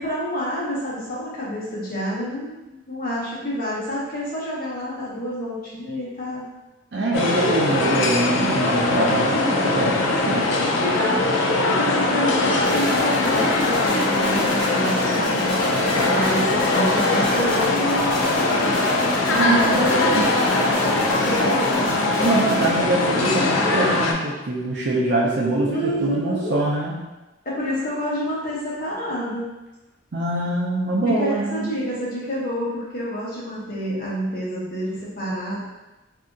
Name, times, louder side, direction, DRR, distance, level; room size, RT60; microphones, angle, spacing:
voice 1, 0.0-6.5 10.8-15.4 16.0-18.9 19.5-22.0 22.4-23.4 25.6-26.6 27.4-29.5 31.0-35.6, equal, 50° left, -7 dB, 1.0 m, -28 dB
voice 2, 6.9-10.5 19.3-20.3 22.2-27.0 30.1-31.8, right 2 dB, 60° right, -5 dB, 0.5 m, -23 dB
sound 1, 7.1-24.1, left 2 dB, 80° left, 0.4 m, -21 dB
sound 2, 12.6-22.8, equal, 5° left, 1.0 m, -32 dB
2.7 x 2.4 x 3.8 m, 1.1 s
head